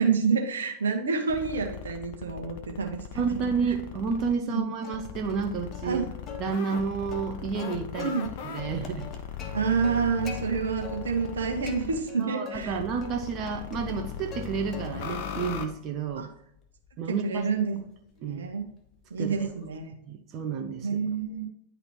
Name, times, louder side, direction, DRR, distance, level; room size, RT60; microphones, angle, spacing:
voice 1, 0.0-3.2 4.5-4.6 5.8-6.0 8.0-8.3 9.5-12.8 16.2-16.3 17.1-17.8 18.2-18.6 19.1-19.9 20.8-21.5, right 5 dB, 65° right, 3 dB, 1.1 m, -28 dB
sound 1, 1.3-4.4 4.9-12.0 12.5-15.7, left 8 dB, 50° left, 0.7 m, -39 dB
voice 2, 3.1-6.0 6.4-8.1 8.4-9.1 12.2-16.3 17.0-17.5 18.2-18.4 19.2-19.5 20.1-20.9, right 5 dB, 35° right, 3 dB, 0.7 m, -30 dB
Plucked string instrument, 4.8-5.5 5.7-5.9 6.3-8.3 8.6-10.4 10.8-11.4 11.7-12.6 13.0-14.5 14.7-15.2 15.6-19.9, left 5 dB, 30° left, 1.0 m, -44 dB
10.5 x 4.0 x 2.9 m, 0.73 s
figure-of-eight pair, 90°, 0 cm